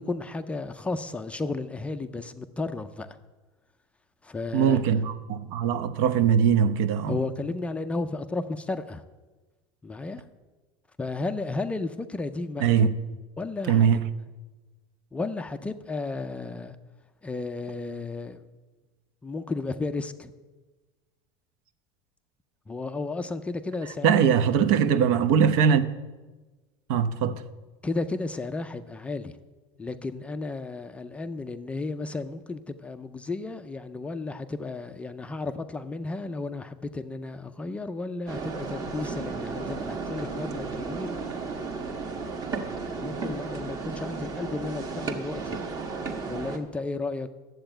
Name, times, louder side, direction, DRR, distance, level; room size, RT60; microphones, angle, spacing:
voice 1, 0.0-3.2 4.2-5.0 7.1-9.0 9.8-10.2 11.0-12.9 13.4-13.9 15.1-16.8 17.2-18.4 19.2-20.3 22.7-24.2 27.8-29.4 29.8-41.2 43.0-45.6 46.3-47.3, left 3 dB, 10° left, 0.4 m, -33 dB
voice 2, 4.5-7.2 12.6-12.9 13.7-14.0 24.0-25.9 26.9-27.4, right 7 dB, 65° right, 0.9 m, -21 dB
sound 1, 38.3-46.6, right 4 dB, 30° right, 1.2 m, -34 dB
12.5 x 7.9 x 8.9 m
cardioid pair, 170°, 13 cm